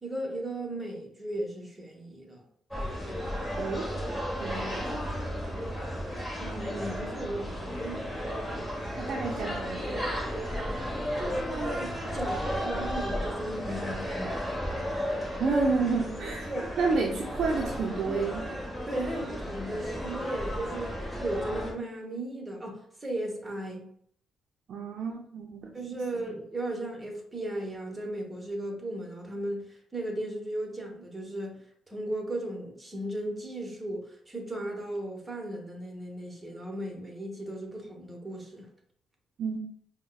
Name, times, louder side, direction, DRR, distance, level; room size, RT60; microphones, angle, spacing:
voice 1, 0.0-2.4 6.4-8.2 11.2-14.5 16.5-16.7 18.8-23.9 25.7-31.6 31.9-38.7, right 1 dB, 20° right, 0.9 m, -36 dB
sound 1, 2.7-21.7, equal, 10° left, 1.0 m, -34 dB
voice 2, 3.6-3.9 4.4-5.1 8.9-10.1 15.4-16.5 16.8-18.5 24.7-26.3 39.4-39.6, right 4 dB, 60° right, 0.6 m, -30 dB
5.1 x 2.1 x 2.2 m
cardioid pair, 90°, 0 cm